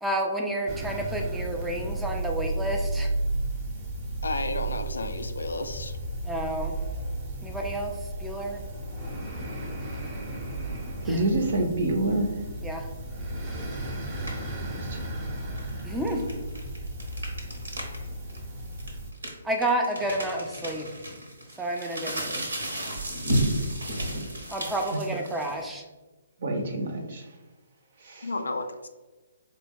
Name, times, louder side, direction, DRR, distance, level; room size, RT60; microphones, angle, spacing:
voice 1, 0.0-3.1 6.2-6.8 7.4-8.6 11.0-11.2 12.6-12.9 15.8-16.3 19.4-20.9 21.6-22.5 24.5-25.8, right 1 dB, 5° right, 1 dB, 0.5 m, -30 dB
sound 1, 0.7-19.1, right 1 dB, 25° right, 0.8 m, -34 dB
voice 2, 4.2-5.9 16.1-16.3 28.2-28.9, left 2 dB, 80° left, 7 dB, 0.4 m, -32 dB
voice 3, 11.0-12.4 14.9-15.0 24.9-25.0 26.4-27.3 28.0-28.3, right 2 dB, 55° right, 3 dB, 0.7 m, -27 dB
sound 2, 14.1-14.5 15.4-18.0 18.3-18.4 18.8-25.8, right 1 dB, 80° right, 1.0 m, -32 dB
4.1 x 2.2 x 3.5 m, 1.2 s
figure-of-eight pair, 135°, 0 cm